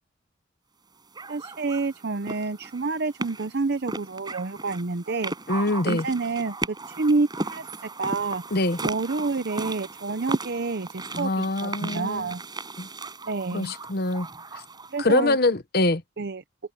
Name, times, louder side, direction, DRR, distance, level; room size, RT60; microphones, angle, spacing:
sound 1, 1.1-15.2, right 2 dB, 20° right, 6.7 m, -36 dB
voice 1, 1.3-5.3 5.8-8.4 8.8-12.4 13.3-13.7 14.9-15.4 16.2-16.4, right 3 dB, 55° right, 0.7 m, -28 dB
voice 2, 5.5-6.0 8.5-8.8 11.1-12.3 12.8-12.9 13.5-14.3 15.0-16.0, left 2 dB, 50° left, 1.0 m, -24 dB
head